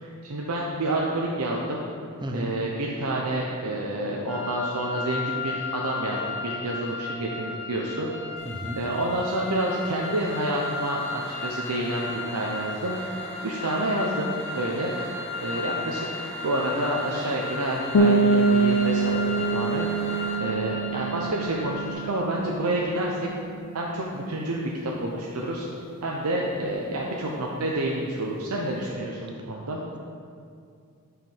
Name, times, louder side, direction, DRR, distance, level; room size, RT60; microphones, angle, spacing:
voice 1, 0.0-1.9 2.3-8.1 8.8-13.0 13.4-14.9 15.4-16.1 16.4-19.9 20.4-23.2 23.7-25.7 26.0-29.8, right 1 dB, 80° right, -2 dB, 0.7 m, -28 dB
voice 2, 2.2-2.5 8.4-8.8, equal, 20° right, 2 dB, 0.7 m, -32 dB
sound 1, 4.3-21.9, left 3 dB, ahead, 1.0 m, -35 dB
sound 2, 8.4-20.4, left 1 dB, 30° left, 1.3 m, -41 dB
sound 3, 17.9-23.5, right 3 dB, 75° left, 0.5 m, -24 dB
7.7 x 4.9 x 5.5 m, 2.4 s
head